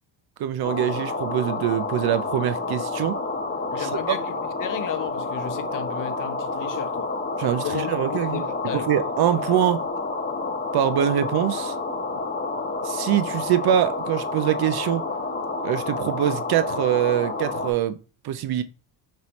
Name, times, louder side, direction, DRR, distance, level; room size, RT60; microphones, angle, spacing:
voice 1, 0.4-3.2 3.8-4.2 7.4-8.4 8.7-9.8 10.7-11.7 12.8-15.0 15.6-18.0 18.2-18.6, right 11 dB, 55° right, 0.5 m, -24 dB
sound 1, 0.6-17.7, left 3 dB, 25° left, 1.2 m, -29 dB
voice 2, 3.7-7.1 7.6-8.9, left 8 dB, 45° left, 0.7 m, -34 dB
5.4 x 2.7 x 3.1 m
cardioid pair, 95°, 47 cm